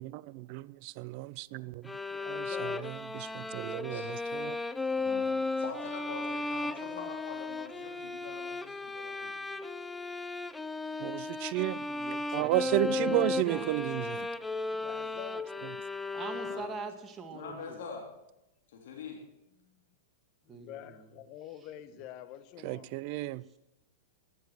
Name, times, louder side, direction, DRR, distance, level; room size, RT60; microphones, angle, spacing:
voice 1, 0.5-1.8 2.3-2.5 3.1-4.6 11.0-11.8 12.3-14.3 22.6-23.4, right 18 dB, 45° right, 0.5 m, -32 dB
sound 1, 1.8-17.0, left 3 dB, 10° left, 0.6 m, -35 dB
voice 2, 2.1-2.9 6.7-7.1 14.7-15.5 19.6-19.7 20.5-23.0, left 12 dB, 40° left, 1.1 m, -47 dB
voice 3, 4.9-9.9 16.3-16.7 17.3-18.0 18.7-19.2, left 5 dB, 60° left, 3.1 m, -45 dB
voice 4, 11.9-13.7 16.1-17.8 20.5-21.0, right 4 dB, 20° right, 1.7 m, -43 dB
15.0 x 11.0 x 6.4 m
figure-of-eight pair, 105°, 0 cm